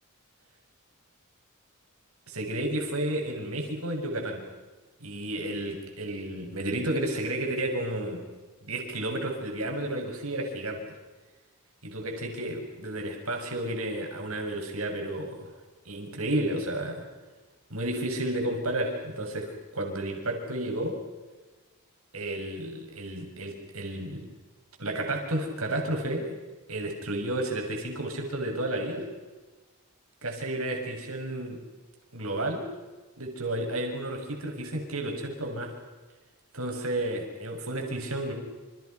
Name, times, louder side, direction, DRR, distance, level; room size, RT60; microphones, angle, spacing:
voice 1, 2.3-4.5 5.0-8.2 8.6-11.0 11.8-15.5 15.9-17.1 17.7-21.0 22.1-24.3 24.8-26.4 26.7-29.1 30.2-31.6 32.1-32.7 33.2-35.7 36.5-38.3, right 1 dB, 75° right, 3 dB, 7.2 m, -32 dB
30.0 x 28.5 x 6.1 m, 1.3 s
head